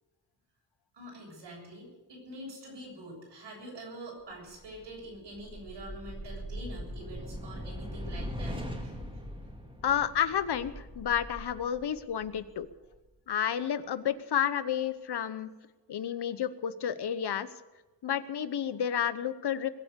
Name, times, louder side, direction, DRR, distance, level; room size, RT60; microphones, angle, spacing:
voice 1, 0.9-9.0, right 1 dB, 85° right, -1 dB, 7.4 m, -45 dB
sound 1, 4.5-12.9, equal, 10° right, 2.4 m, -41 dB
voice 2, 9.8-12.7 13.3-15.5 15.9-17.5 18.0-19.7, left 9 dB, 70° left, 13 dB, 1.0 m, -30 dB
21.5 x 8.1 x 8.2 m, 1.1 s
wide cardioid pair, 165°, 42 cm